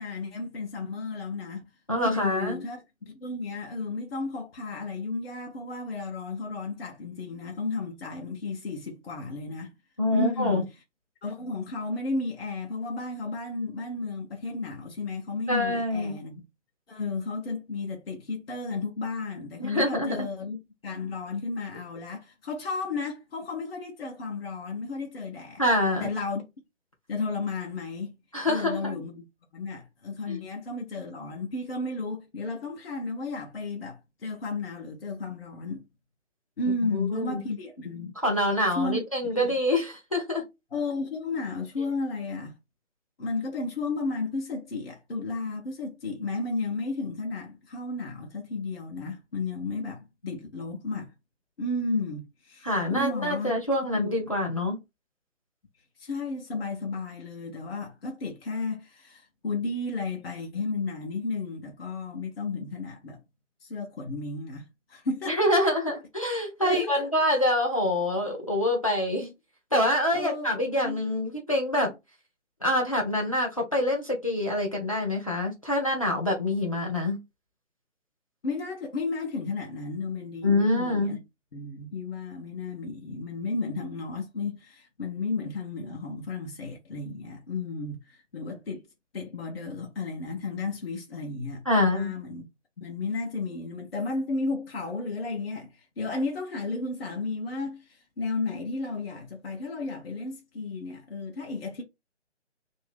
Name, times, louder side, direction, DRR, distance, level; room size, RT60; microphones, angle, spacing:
voice 1, 0.0-1.6 2.0-2.8 3.1-9.7 10.1-10.7 11.2-16.4 16.9-25.6 26.0-26.4 27.1-28.1 28.4-29.3 29.5-35.8 36.6-38.1 38.8-39.0 39.4-39.5 40.7-42.6 43.2-51.1 51.6-53.5 53.9-54.1 56.0-63.2 63.6-65.4 66.6-67.0 70.1-70.5 70.8-71.0 78.4-81.2 81.5-88.9 89.1-92.5 92.8-101.8, left 3 dB, 55° left, 0.8 m, -33 dB
voice 2, 1.9-2.6 10.0-10.6 15.5-16.1 19.6-20.3 25.6-26.1 28.3-29.0 30.3-30.4 36.8-37.4 38.2-40.4 52.6-54.8 65.3-69.3 69.7-71.9 72.6-77.2 80.4-81.2 91.7-92.1, left 1 dB, 30° left, 0.5 m, -26 dB
2.8 x 2.6 x 3.3 m
figure-of-eight pair, 155°, 36 cm